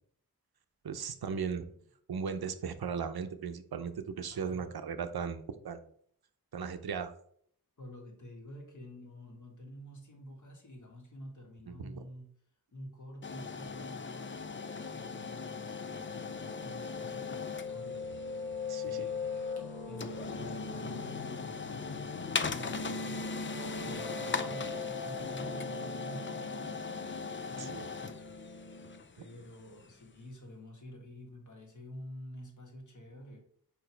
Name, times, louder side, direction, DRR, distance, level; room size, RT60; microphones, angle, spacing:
voice 1, 0.8-1.7 2.1-5.8 6.5-7.1 11.7-12.0 18.7-19.0 27.6-27.9, right 6 dB, 85° right, 9 dB, 0.7 m, -37 dB
voice 2, 4.3-4.7 7.8-12.3 12.7-19.5 19.9-23.5 23.8-28.8 29.1-33.4, left 1 dB, 55° left, 1 dB, 1.7 m, -49 dB
sound 1, 13.2-30.1, left 5 dB, 35° left, 0.4 m, -40 dB
Piano, 14.5-29.0, left 3 dB, 85° left, 1.5 m, -41 dB
4.9 x 4.6 x 4.5 m, 0.64 s
wide cardioid pair, 75°, 36 cm